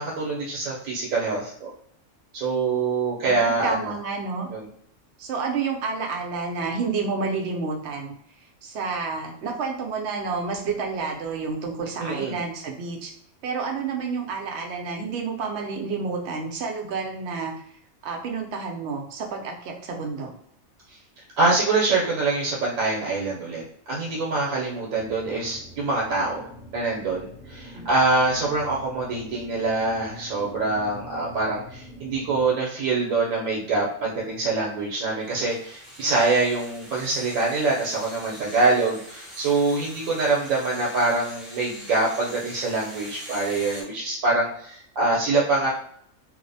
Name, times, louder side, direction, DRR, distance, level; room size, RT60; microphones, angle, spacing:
voice 1, 0.0-1.7 2.3-4.0 4.5-4.6 12.0-12.4 21.4-26.5 26.7-45.7, right 3 dB, 90° right, -4 dB, 1.1 m, -25 dB
voice 2, 3.2-4.5 5.2-8.1 8.6-13.1 13.4-17.5 18.0-20.3 27.7-27.9, right 4 dB, 65° right, 1 dB, 0.8 m, -30 dB
sound 1, 24.9-32.5, equal, 70° left, 1.0 m, -44 dB
sound 2, 35.2-43.8, equal, ahead, 0.5 m, -43 dB
2.7 x 2.0 x 2.6 m, 0.65 s
omnidirectional pair, 1.4 m